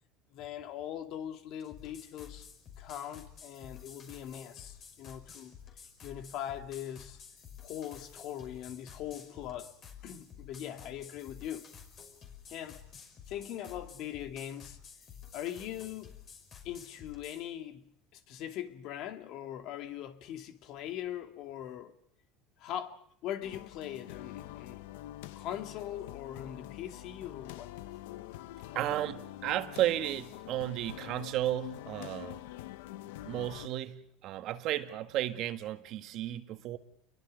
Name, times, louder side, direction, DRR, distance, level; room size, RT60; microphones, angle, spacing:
voice 1, 0.3-2.5 2.8-5.5 6.0-7.2 7.6-9.7 10.0-11.7 12.5-12.8 13.3-14.8 15.3-16.2 16.6-21.9 22.6-24.8 25.4-27.7, left 11 dB, 55° left, 2.3 m, -41 dB
sound 1, 1.6-17.4, left 7 dB, 40° left, 5.4 m, -51 dB
sound 2, 23.4-33.7, left 15 dB, 85° left, 0.9 m, -45 dB
voice 2, 28.7-32.4 33.2-36.8, right 13 dB, 55° right, 1.9 m, -33 dB
29.5 x 23.0 x 5.3 m
supercardioid pair, 125°, 0 cm